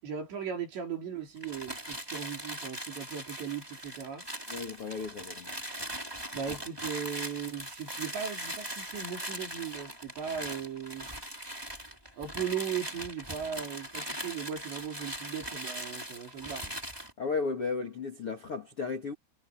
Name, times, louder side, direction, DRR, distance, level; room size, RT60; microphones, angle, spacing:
voice 1, 0.0-4.3 6.3-11.1 12.2-16.8, right 7 dB, 60° right, 6.9 m, -37 dB
sound 1, 1.4-17.1, right 1 dB, 5° right, 4.9 m, -40 dB
voice 2, 4.5-5.5 17.2-19.1, left 4 dB, 40° left, 2.2 m, -34 dB
omnidirectional pair, 5.8 m